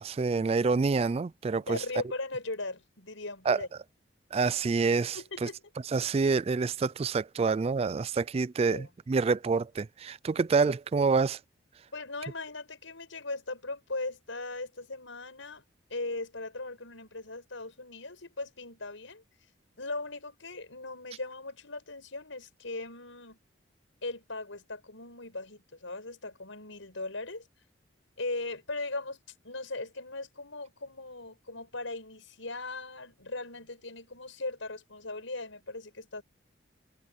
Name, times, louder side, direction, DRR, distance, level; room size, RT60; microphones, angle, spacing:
voice 1, 0.0-1.8 3.5-3.6 4.3-5.5 5.8-11.4, right 4 dB, 30° right, 0.3 m, -27 dB
voice 2, 1.7-3.7 5.1-5.6 8.7-8.9 10.7-10.8 11.9-15.6 15.9-19.2 19.8-23.4 24.0-27.5 28.2-29.2 29.4-36.2, left 2 dB, 85° left, 6.1 m, -38 dB
head